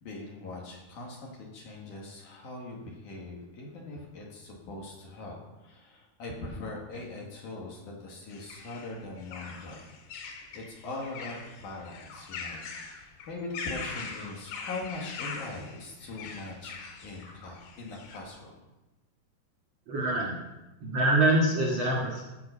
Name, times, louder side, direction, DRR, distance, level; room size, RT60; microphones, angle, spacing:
voice 1, 0.0-9.8 10.5-12.6 13.3-18.5, left 2 dB, 60° left, -1 dB, 2.9 m, -41 dB
sound 1, 8.3-18.2, left 5 dB, 90° left, 3.3 m, -42 dB
voice 2, 19.9-20.4 20.8-22.2, right 1 dB, 50° right, -1 dB, 1.6 m, -25 dB
15.5 x 5.8 x 5.6 m, 1.0 s
omnidirectional pair, 4.6 m